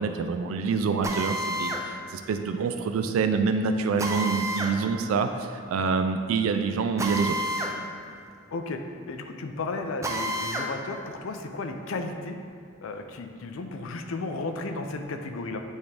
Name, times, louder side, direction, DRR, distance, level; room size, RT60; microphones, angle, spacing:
voice 1, 0.0-7.4, right 5 dB, 85° right, 7 dB, 0.3 m, -26 dB
Drill, 1.0-1.9 4.0-4.8 7.0-7.8 8.1-8.2 10.0-10.7, right 1 dB, 15° right, 0.4 m, -29 dB
voice 2, 8.5-8.8 9.1-12.4 12.8-15.6, left 3 dB, 75° left, 6 dB, 0.5 m, -34 dB
8.1 x 3.5 x 3.3 m, 2.5 s
head